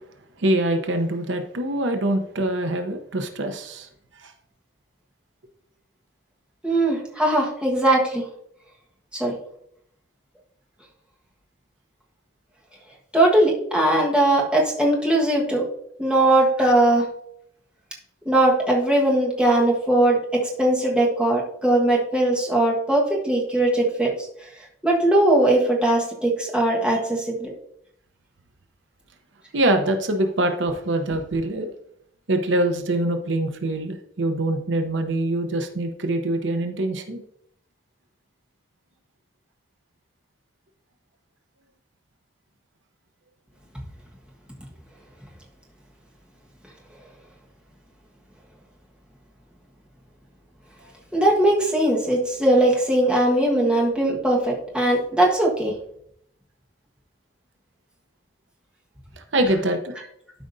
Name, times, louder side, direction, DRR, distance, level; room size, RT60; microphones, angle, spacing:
voice 1, 0.4-3.9 4.2-4.3 29.5-31.7 32.3-37.2 59.2-60.0, right 1 dB, 75° right, 6 dB, 0.8 m, -24 dB
voice 2, 6.6-8.2 9.1-9.3 13.1-15.6 16.0-17.0 18.2-24.1 24.8-27.5 51.1-55.7, right 1 dB, 5° right, -3 dB, 1.4 m, -20 dB
12.0 x 5.0 x 2.7 m, 0.72 s
head